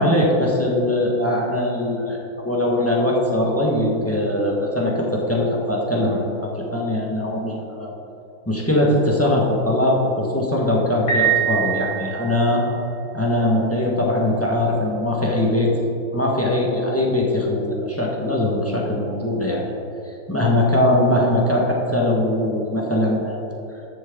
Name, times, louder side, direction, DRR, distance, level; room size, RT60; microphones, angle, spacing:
voice 1, 0.0-7.9 8.5-12.6 13.1-15.7 16.1-19.6 20.3-23.4, left 1 dB, 10° left, -2 dB, 1.1 m, -21 dB
Piano, 11.1-12.5, right 9 dB, 85° left, 3.2 m, -23 dB
13.0 x 7.5 x 3.8 m, 2.9 s
omnidirectional pair, 2.1 m